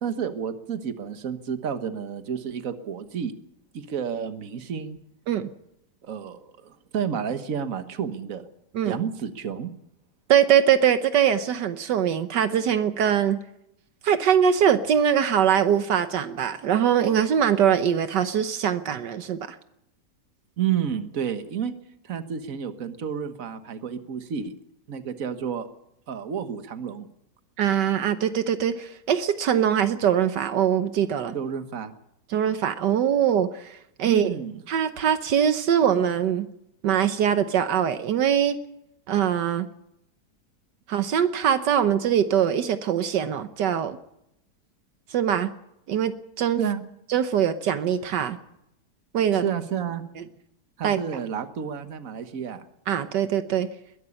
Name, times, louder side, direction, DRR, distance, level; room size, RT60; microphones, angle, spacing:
voice 1, 0.0-3.3 3.7-5.0 6.0-8.4 8.8-9.7 20.6-21.8 22.0-24.5 24.9-25.7 26.1-27.1 31.3-31.9 34.0-34.6 46.6-46.8 49.4-50.0 50.8-52.6, right 8 dB, 55° right, 9 dB, 1.7 m, -30 dB
voice 2, 10.3-13.4 14.0-19.6 27.6-31.4 32.3-34.4 34.7-36.5 36.8-38.6 39.1-39.7 40.9-44.0 45.1-45.5 45.9-46.6 47.1-48.4 49.1-49.4 50.8-51.0 52.9-53.7, right 9 dB, 80° right, 10 dB, 1.6 m, -22 dB
21.5 x 12.5 x 9.7 m, 0.81 s
omnidirectional pair, 1.8 m